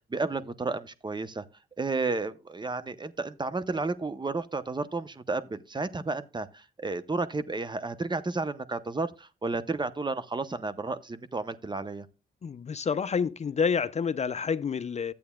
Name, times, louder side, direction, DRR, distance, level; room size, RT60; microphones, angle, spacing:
voice 1, 0.1-1.4 1.8-12.1, right 3 dB, 25° right, 0.8 m, -32 dB
voice 2, 12.4-15.1, left 6 dB, 40° left, 0.5 m, -28 dB
12.5 x 8.5 x 2.3 m
supercardioid pair, 60°, 18 cm